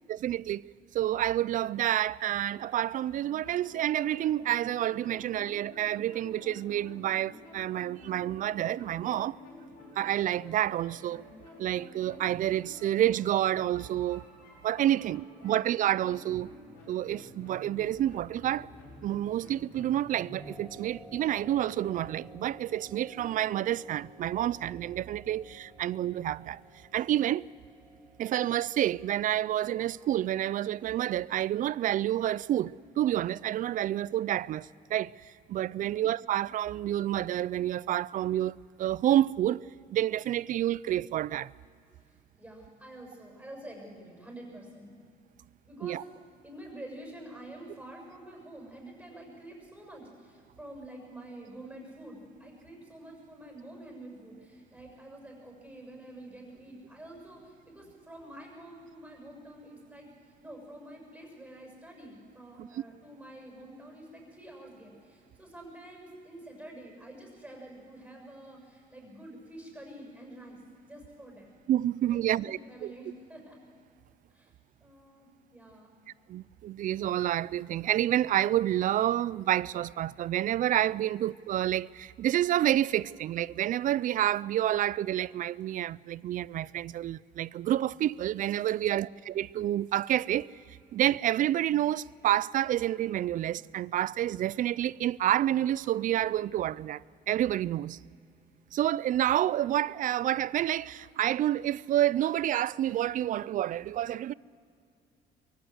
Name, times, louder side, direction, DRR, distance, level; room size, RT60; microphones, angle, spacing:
voice 1, 0.1-0.6 0.9-9.4 10.0-11.2 11.6-14.3 14.6-16.5 16.9-18.7 19.0-26.6 26.9-27.5 28.2-35.1 35.5-39.6 39.9-41.5 45.8-46.0 62.6-62.7 71.7-72.9 76.3-90.5 90.9-98.0 98.7-104.3, right 12 dB, 50° right, 0.4 m, -29 dB
sound 1, 3.1-20.6, left 2 dB, 80° left, 5.5 m, -51 dB
sound 2, 20.4-33.5, equal, 10° left, 2.9 m, -55 dB
voice 2, 35.8-36.3 42.1-44.9 45.7-70.6 70.9-71.5 72.1-73.6 74.3-74.5 74.8-75.9, right 1 dB, 10° right, 6.8 m, -48 dB
23.0 x 15.5 x 8.0 m
cardioid pair, 110°, 17 cm